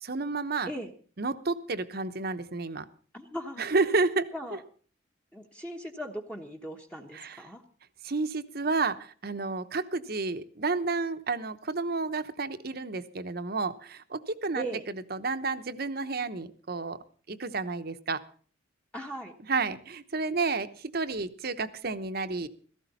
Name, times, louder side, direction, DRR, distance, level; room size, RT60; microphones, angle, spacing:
voice 1, 0.0-0.7 1.2-2.9 3.6-4.3 7.1-7.5 8.0-14.6 15.1-17.0 17.3-18.2 19.5-22.5, right 3 dB, 50° right, 11 dB, 1.0 m, -31 dB
voice 2, 3.1-3.7 4.3-4.6 5.3-7.6 14.5-14.8 18.9-19.3, right 1 dB, 5° left, 2 dB, 1.2 m, -38 dB
16.5 x 14.5 x 4.2 m, 0.43 s
head